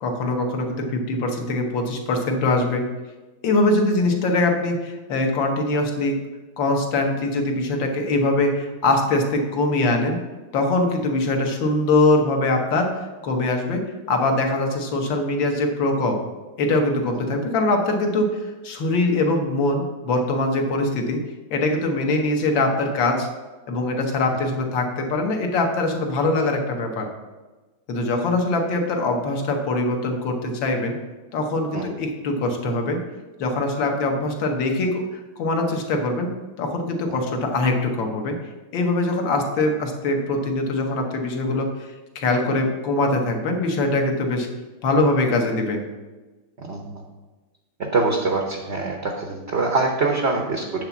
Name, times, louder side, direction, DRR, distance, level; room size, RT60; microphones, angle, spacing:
voice 1, 0.0-2.8 3.4-6.2 6.6-10.2 10.5-12.9 13.2-13.8 14.1-16.2 16.6-18.3 18.6-21.2 21.5-23.3 23.7-27.1 27.9-31.0 31.3-33.0 33.4-36.3 36.6-38.3 38.7-41.7 42.2-44.5 44.8-45.8, left 2 dB, 65° left, 3 dB, 1.8 m, -22 dB
voice 2, 46.6-47.0 47.8-50.8, right 3 dB, 55° right, 2 dB, 0.7 m, -24 dB
8.6 x 4.0 x 7.1 m, 1.2 s
omnidirectional pair, 2.3 m